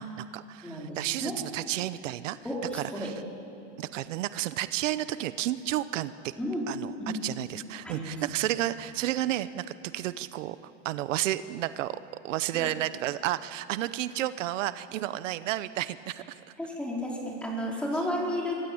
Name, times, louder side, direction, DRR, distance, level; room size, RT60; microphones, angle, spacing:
voice 1, 0.0-2.4 2.7-3.1 3.8-6.3 6.7-9.7 9.9-16.4, right 14 dB, 85° right, 14 dB, 1.0 m, -32 dB
voice 2, 0.6-1.4 2.4-3.1 6.4-6.7 7.0-7.2 7.8-8.1 12.5-12.7 16.6-18.6, equal, 5° left, -3 dB, 4.6 m, -32 dB
26.0 x 25.0 x 8.8 m, 2.7 s
supercardioid pair, 165°, 37 cm